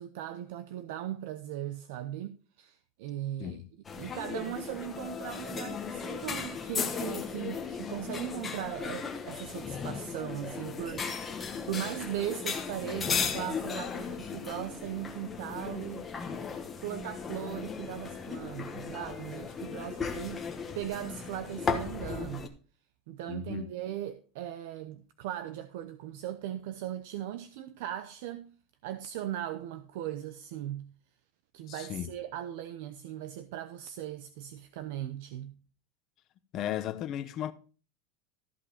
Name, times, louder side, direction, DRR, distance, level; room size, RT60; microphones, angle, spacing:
voice 1, 0.0-3.6 4.0-16.1 16.8-20.5 20.7-22.5 23.1-28.5 28.8-30.9 31.5-35.5, right 12 dB, 65° right, 0.8 m, -38 dB
sound 1, 3.8-22.5, left 5 dB, 15° left, 1.2 m, -36 dB
voice 2, 23.3-23.7 31.7-32.1 36.5-37.5, left 11 dB, 35° left, 0.8 m, -35 dB
14.0 x 5.5 x 4.9 m
supercardioid pair, 160°, 0 cm